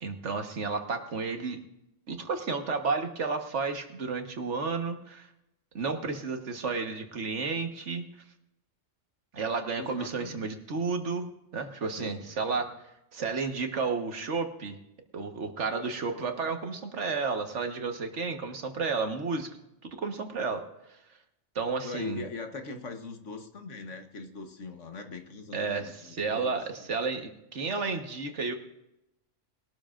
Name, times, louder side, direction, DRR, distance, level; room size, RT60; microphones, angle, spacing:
voice 1, 0.0-1.6 2.1-5.3 5.7-8.0 9.3-12.7 13.1-14.8 15.1-19.6 19.8-21.0 21.5-22.2 25.5-28.5, right 4 dB, 80° right, 5 dB, 1.7 m, -32 dB
voice 2, 9.8-10.5 11.9-12.3 21.8-26.7, left 4 dB, 90° left, 5 dB, 1.6 m, -41 dB
21.0 x 12.5 x 2.5 m, 0.85 s
omnidirectional pair, 1.2 m